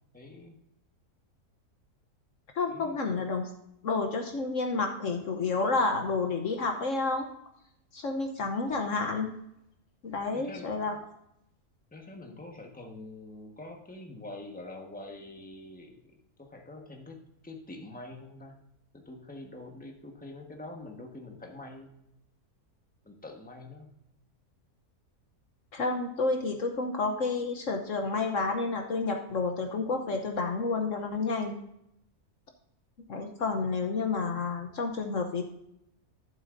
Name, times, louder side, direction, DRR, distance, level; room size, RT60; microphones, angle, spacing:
voice 1, 0.1-0.5 2.7-3.0 10.3-11.1 11.9-16.0 16.4-18.6 18.9-21.9 23.0-23.9, left 2 dB, 5° left, 1 dB, 1.2 m, -45 dB
voice 2, 2.5-3.5 3.8-7.3 7.9-9.3 10.0-10.9 25.7-31.6 33.1-35.4, left 3 dB, 60° left, 4 dB, 1.2 m, -30 dB
12.5 x 7.5 x 2.6 m, 0.80 s
omnidirectional pair, 1.6 m